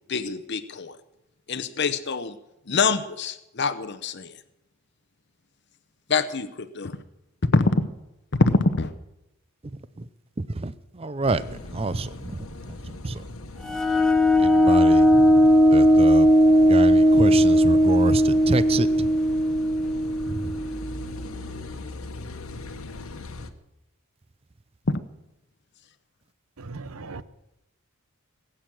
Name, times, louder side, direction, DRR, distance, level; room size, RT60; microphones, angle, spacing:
voice 1, 0.1-1.0 1.5-2.4 2.7-4.3 6.1-7.0 7.4-7.9 8.3-8.9 24.9-25.0, left 3 dB, 50° left, 10 dB, 0.8 m, -24 dB
voice 2, 11.0-11.4 11.7-12.4 13.0-13.2 14.4-15.3 15.7-16.3 16.7-19.1, right 3 dB, 25° right, 15 dB, 0.5 m, -27 dB
Car passing by / Idling / Accelerating revving vroom, 11.2-23.5, left 2 dB, 70° left, 1.3 m, -39 dB
sound 1, 13.7-21.1, equal, 5° left, 0.9 m, -18 dB
voice 3, 26.6-27.2, right 3 dB, 75° right, 15 dB, 0.9 m, -38 dB
20.0 x 8.9 x 7.6 m, 0.89 s
head